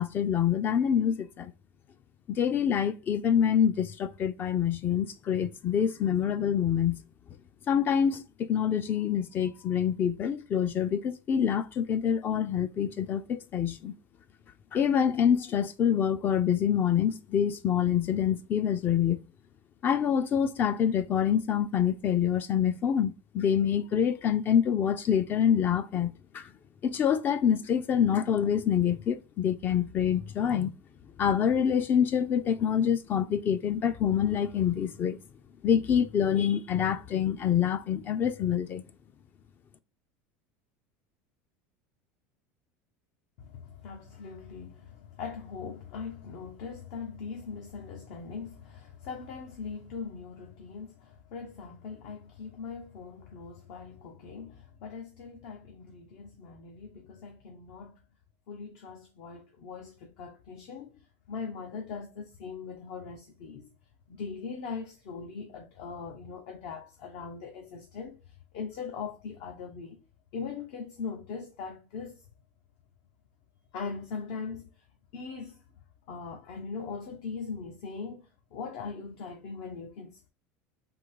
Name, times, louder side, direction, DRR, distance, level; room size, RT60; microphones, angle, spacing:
voice 1, 0.0-1.5 2.3-7.0 7.7-13.9 14.7-19.2 19.8-26.5 26.8-30.7 31.2-35.2 35.6-38.8, left 8 dB, 30° left, 0.4 m, -26 dB
voice 2, 43.4-58.0 58.5-63.7 64.1-70.0 70.3-72.3 73.7-74.8 75.1-75.7 76.1-80.3, left 5 dB, 60° left, 0.9 m, -41 dB
3.8 x 2.8 x 4.7 m
supercardioid pair, 140°, 6 cm